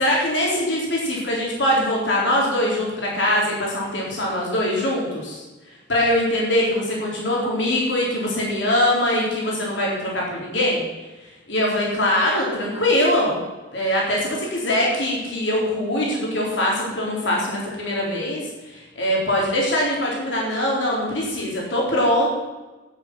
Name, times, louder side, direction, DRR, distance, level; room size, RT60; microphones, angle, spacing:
voice 1, 0.0-5.4 5.9-10.8 11.5-13.4 13.7-22.3, left 1 dB, 75° left, -3 dB, 3.9 m, -22 dB
12.0 x 8.9 x 6.2 m, 1.2 s
head